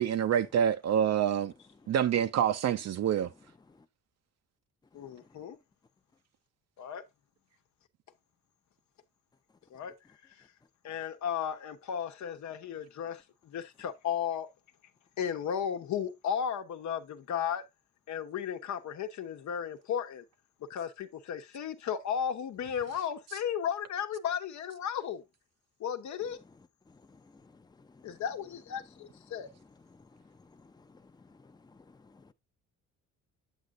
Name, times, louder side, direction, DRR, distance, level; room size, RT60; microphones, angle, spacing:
voice 1, 0.0-1.5 1.9-3.3, right 9 dB, 60° right, 0.6 m, -27 dB
voice 2, 4.9-5.6 6.8-7.1 9.7-10.0 10.3-10.5 10.8-14.5 15.2-17.6 18.1-20.2 20.6-25.2 25.8-26.4 28.0-29.5, left 8 dB, 70° left, 1.1 m, -35 dB
voice 3, 27.8-28.2 30.4-30.9 31.3-31.8 32.1-32.3, left 3 dB, 15° left, 0.6 m, -58 dB
8.2 x 7.6 x 2.6 m
cardioid pair, 90°, 30 cm